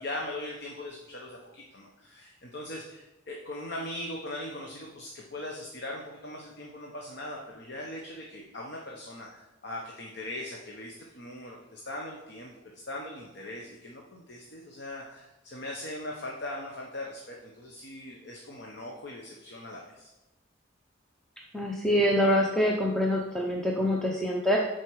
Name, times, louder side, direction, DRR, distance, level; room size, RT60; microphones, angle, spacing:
voice 1, 0.0-20.1, left 1 dB, 60° left, -1 dB, 1.0 m, -40 dB
voice 2, 21.5-24.6, equal, 5° left, -2 dB, 0.6 m, -25 dB
10.5 x 4.5 x 4.7 m, 1.0 s
head